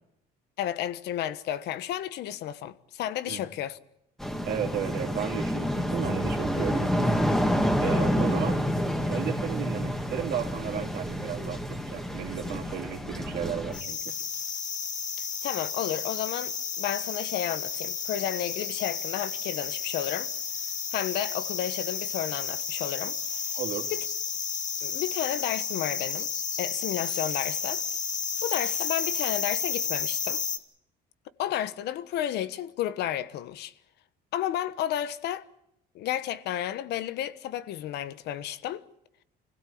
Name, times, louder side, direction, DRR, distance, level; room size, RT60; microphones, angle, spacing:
voice 1, 0.6-3.8 15.4-20.3 20.9-23.5 23.9-24.1 24.8-26.3 26.6-27.8 28.4-30.4 31.4-33.7 34.3-35.5 35.9-38.8, left 11 dB, 80° left, 1.2 m, -32 dB
sound 1, 4.2-13.8, equal, ahead, 2.2 m, -28 dB
voice 2, 4.4-6.8 7.8-8.6 9.1-11.6 11.9-14.0 23.5-23.9, right 9 dB, 75° right, 2.8 m, -34 dB
sound 2, 13.7-30.6, left 6 dB, 45° left, 2.2 m, -32 dB
25.5 x 16.5 x 8.6 m
cardioid pair, 110°, 17 cm